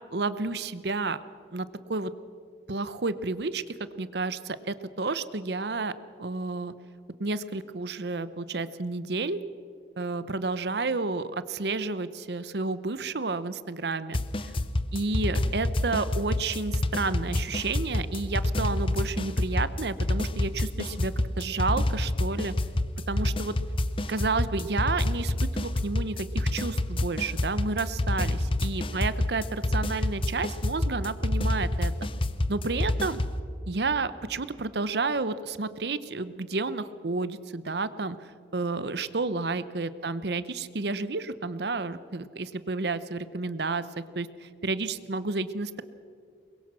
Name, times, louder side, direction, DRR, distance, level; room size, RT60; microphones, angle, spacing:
voice 1, 0.1-1.2 1.5-2.1 2.7-3.6 4.0-5.9 6.2-6.7 7.2-9.4 10.0-14.2 14.9-22.5 23.1-23.6 24.1-31.9 32.5-33.2 33.7-38.2 38.5-43.8 44.1-44.3 44.6-45.8, right 3 dB, 65° right, 14 dB, 0.8 m, -31 dB
sound 1, 14.1-33.4, left 1 dB, 30° left, 0.7 m, -28 dB
23.0 x 21.5 x 6.2 m, 2.3 s
head